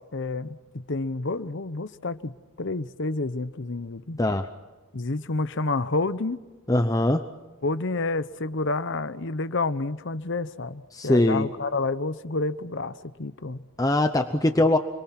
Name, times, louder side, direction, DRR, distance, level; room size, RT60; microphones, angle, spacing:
voice 1, 0.1-0.6 0.9-2.3 2.6-4.2 4.9-6.4 7.6-13.6, left 3 dB, 55° left, 13 dB, 0.9 m, -29 dB
voice 2, 4.2-4.5 6.7-7.2 10.9-11.5 13.8-14.8, left 1 dB, 15° left, 7 dB, 0.8 m, -21 dB
30.0 x 23.0 x 5.9 m, 1.2 s
head